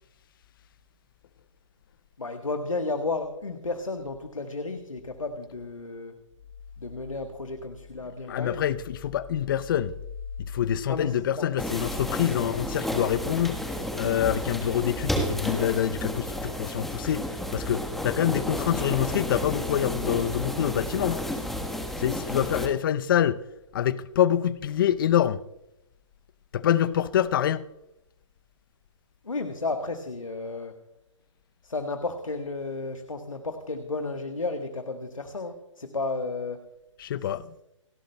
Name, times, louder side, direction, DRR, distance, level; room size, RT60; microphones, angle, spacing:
voice 1, 2.2-6.2 6.8-8.7 10.9-11.5 29.2-30.8 31.6-36.6, left 3 dB, 85° left, 1.3 m, -33 dB
voice 2, 8.3-10.0 10.5-13.6 14.0-21.3 22.0-23.4 23.7-25.4 26.5-27.6 37.0-37.5, left 10 dB, 40° left, 0.6 m, -26 dB
sound 1, 11.6-22.7, equal, ahead, 1.2 m, -32 dB
29.0 x 11.5 x 2.2 m
figure-of-eight pair, 135°, 17 cm